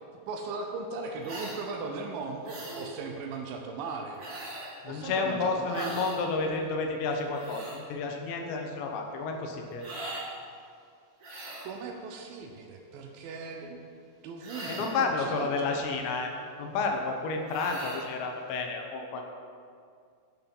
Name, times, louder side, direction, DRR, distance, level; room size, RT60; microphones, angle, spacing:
voice 1, 0.3-4.2 4.8-6.1 11.6-13.9 14.2-15.7, right 4 dB, 90° right, 2 dB, 2.0 m, -38 dB
sound 1, 1.2-1.6 2.4-2.9 4.2-4.8 5.7-6.2 7.1-7.8 9.8-10.3 11.2-11.7 14.4-15.0 17.5-18.1, right 1 dB, 65° right, 1.4 m, -40 dB
voice 2, 4.8-9.8 14.7-16.3 16.6-19.2, left 4 dB, 80° left, 3 dB, 3.1 m, -31 dB
9.4 x 7.1 x 5.4 m, 2.2 s
omnidirectional pair, 5.1 m